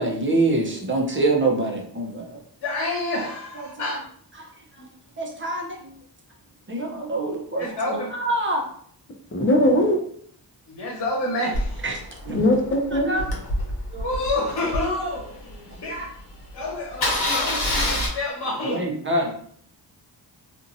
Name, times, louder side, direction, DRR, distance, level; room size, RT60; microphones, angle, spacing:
voice 1, 0.0-2.4 3.6-4.0 4.4-4.5 5.2-5.9 6.7-8.6 11.8-12.0 12.3-12.4 12.9-13.3 13.9-14.1 15.9-16.1 18.6-19.3, right 2 dB, 30° right, 0 dB, 0.7 m, -25 dB
voice 2, 2.6-4.0 4.8-4.9 7.6-8.1 10.7-11.8 14.0-16.1 16.5-18.8, left 2 dB, 80° left, -4 dB, 1.0 m, -28 dB
voice 3, 9.3-10.0 12.3-13.1, left 1 dB, 30° left, 3 dB, 0.7 m, -19 dB
Engine starting, 11.5-15.7 16.2-16.3 16.5-16.6 16.9-18.1, left 1 dB, 65° left, 1.1 m, -27 dB
2.8 x 2.5 x 2.6 m, 0.63 s
cardioid pair, 65°, 41 cm